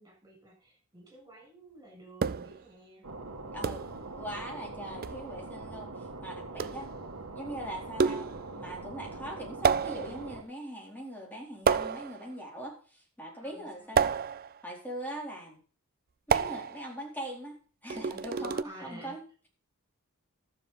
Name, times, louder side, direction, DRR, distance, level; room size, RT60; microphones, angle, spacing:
voice 1, 0.0-3.1 4.5-5.0 6.5-6.9 13.4-14.1 18.3-19.2, right 1 dB, 15° right, 0 dB, 7.5 m, -52 dB
sound 1, 2.2-2.6 3.6-4.0 5.0-5.2 6.6-6.9 8.0-8.5 9.6-10.3 11.7-12.3 14.0-14.6 16.3-16.9 17.9-18.6, right 6 dB, 40° right, 0.5 m, -29 dB
sound 2, 3.0-10.4, right 3 dB, 80° right, 1.8 m, -43 dB
voice 2, 3.5-3.8 4.2-6.9 7.3-14.1 14.6-15.6 16.3-19.5, right 1 dB, 10° left, -1 dB, 4.3 m, -41 dB
13.5 x 7.4 x 5.7 m, 0.39 s
head